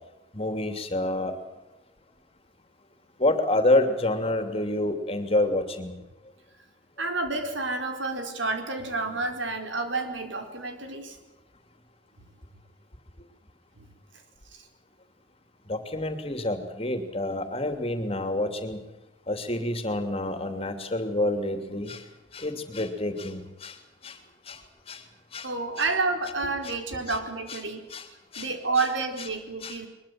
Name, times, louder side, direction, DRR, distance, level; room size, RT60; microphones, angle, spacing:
voice 1, 0.3-1.4 3.2-5.9 15.7-18.8 19.3-22.0 22.3-23.7 24.0-24.2 24.5-24.6 24.9-25.0 25.3-25.5 25.8-25.9 27.1-27.2 27.5-27.6 27.9-28.1 28.3-28.5 29.6-29.8, left 1 dB, 30° left, 7 dB, 3.0 m, -28 dB
voice 2, 7.0-11.2 13.8-13.9 14.5-14.7 25.4-27.8 28.4-29.9, right 3 dB, 90° right, 5 dB, 4.3 m, -29 dB
22.5 x 22.0 x 7.8 m, 0.98 s
head